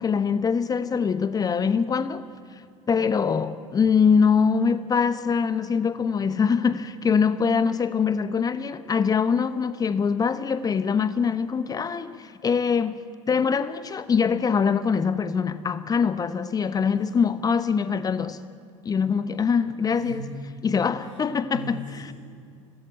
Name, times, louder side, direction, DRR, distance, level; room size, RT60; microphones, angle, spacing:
voice 1, 0.0-2.2 2.9-18.4 18.8-20.3 20.6-21.8, left 6 dB, 25° left, 1.0 m, -23 dB
voice 2, 19.9-21.2 21.5-22.1, right 1 dB, 85° left, 5.4 m, -39 dB
26.0 x 19.5 x 9.0 m
figure-of-eight pair, 75°, 16 cm